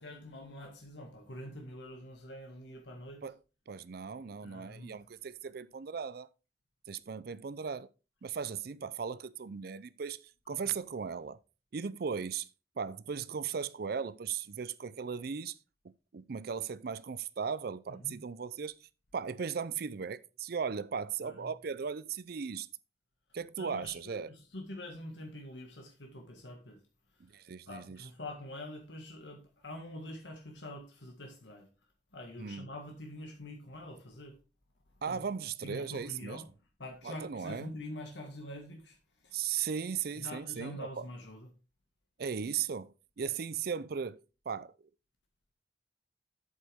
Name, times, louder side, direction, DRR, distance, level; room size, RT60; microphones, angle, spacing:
voice 1, 0.0-3.2 4.4-5.0 10.5-10.8 18.0-18.2 21.2-21.5 23.6-26.8 27.7-31.7 32.1-34.4 35.1-35.2 35.6-36.5 36.8-39.0 39.2-39.4 40.2-41.5, left 1 dB, 90° left, 1.8 m, -45 dB
voice 2, 3.7-6.3 6.9-7.9 8.2-11.4 11.7-12.5 12.8-15.6 16.1-22.7 23.3-24.3 27.2-28.1 32.4-32.7 35.0-36.4 37.0-37.7 39.3-41.1 42.2-44.9, right 6 dB, 60° right, 0.5 m, -37 dB
8.3 x 7.7 x 3.6 m
head